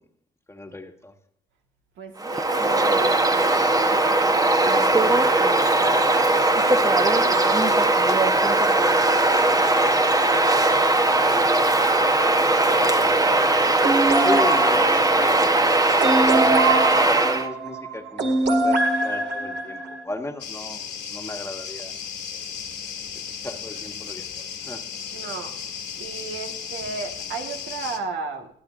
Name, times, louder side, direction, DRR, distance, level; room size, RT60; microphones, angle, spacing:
voice 1, 0.5-1.1 11.1-11.5 12.6-13.6 14.2-15.6 16.3-16.6 16.8-21.9 23.4-24.8, left 2 dB, 15° left, 4 dB, 1.4 m, -35 dB
voice 2, 2.0-8.0 8.7-9.6 12.7-13.0 25.1-25.5 26.0-28.5, right 5 dB, 80° right, 4 dB, 1.5 m, -35 dB
Bird vocalization bird call bird song, 2.2-17.5, right 2 dB, 20° right, 0.9 m, -19 dB
sound 1, 13.8-20.0, right 2 dB, 60° right, 2.0 m, -23 dB
sound 2, 20.4-28.0, left 7 dB, 65° left, 1.7 m, -35 dB
23.0 x 8.5 x 2.5 m, 0.69 s
cardioid pair, 90°, 20 cm